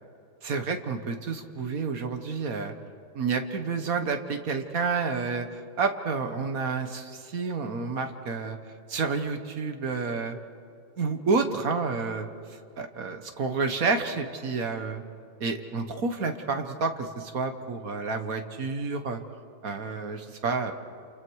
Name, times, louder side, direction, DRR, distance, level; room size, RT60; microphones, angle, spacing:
voice 1, 0.4-2.7 3.1-8.6 8.9-10.4 11.0-12.3 12.8-15.0 15.4-19.2 19.6-20.7, right 4 dB, 50° right, 7 dB, 1.4 m, -29 dB
28.5 x 28.0 x 4.7 m, 2.4 s
omnidirectional pair, 2.3 m